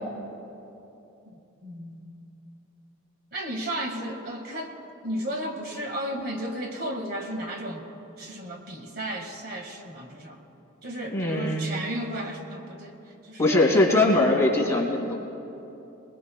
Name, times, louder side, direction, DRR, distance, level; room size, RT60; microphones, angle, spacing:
voice 1, 1.3-2.3 3.3-4.7 5.0-7.9 8.2-10.4 10.8-13.0 13.2-13.7, right 1 dB, 45° right, 3 dB, 1.9 m, -34 dB
voice 2, 11.1-11.7 13.4-15.2, left 2 dB, 15° left, -3 dB, 2.7 m, -21 dB
25.5 x 20.5 x 2.3 m, 2.9 s
head